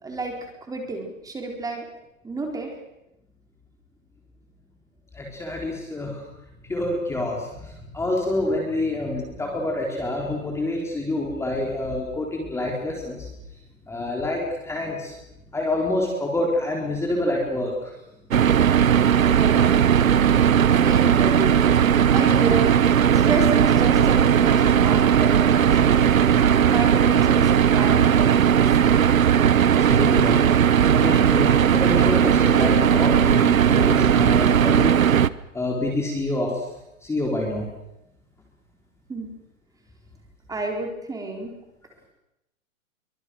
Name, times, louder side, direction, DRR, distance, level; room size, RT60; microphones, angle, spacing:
voice 1, 0.0-1.9 2.2-2.7 19.3-20.1 20.8-21.8 22.1-22.8 23.1-26.1 26.6-28.7 39.1-39.3 40.5-41.5, right 2 dB, 10° right, 2 dB, 4.4 m, -30 dB
voice 2, 5.1-6.2 6.6-13.3 13.9-15.2 15.5-17.9 29.8-30.4 30.9-35.0 35.5-36.6 37.0-37.7, left 1 dB, 5° left, 0 dB, 3.9 m, -27 dB
sound 1, 18.3-35.3, right 8 dB, 85° right, 1.1 m, -17 dB
26.0 x 24.0 x 6.4 m, 0.89 s
hypercardioid pair, 140°, 40 cm